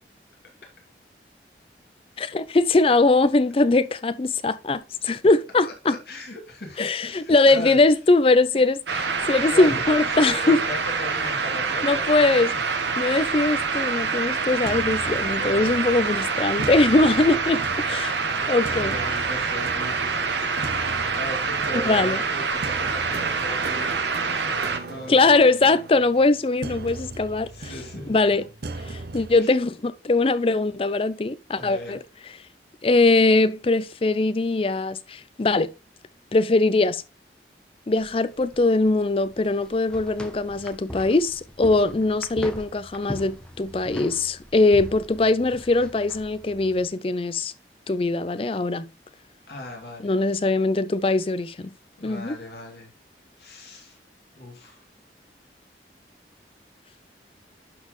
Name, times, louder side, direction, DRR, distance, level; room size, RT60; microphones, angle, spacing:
voice 1, 2.2-6.0 6.8-10.6 11.8-12.5 13.0-18.1 18.5-19.0 21.7-22.2 25.1-27.7 28.1-28.4 28.9-32.0 32.8-35.7 36.3-37.0 37.9-47.5 47.9-48.9 50.0-51.7 52.0-52.4, left 2 dB, 30° left, 0.4 m, -21 dB
voice 2, 5.6-7.8 8.5-8.6 9.5-12.4 14.5-14.6 15.3-15.7 16.9-17.4 18.4-20.5 21.1-25.3 27.5-28.2 29.4-29.5 31.5-32.0 49.5-50.1 52.0-52.9 53.4-54.0 54.4-54.8, left 1 dB, 65° left, 2.4 m, -38 dB
sound 1, 8.9-24.8, right 5 dB, 80° right, 1.1 m, -26 dB
sound 2, 14.7-29.4, right 2 dB, 60° right, 0.6 m, -38 dB
sound 3, 38.0-46.9, equal, 5° left, 0.8 m, -40 dB
11.5 x 4.1 x 3.1 m
head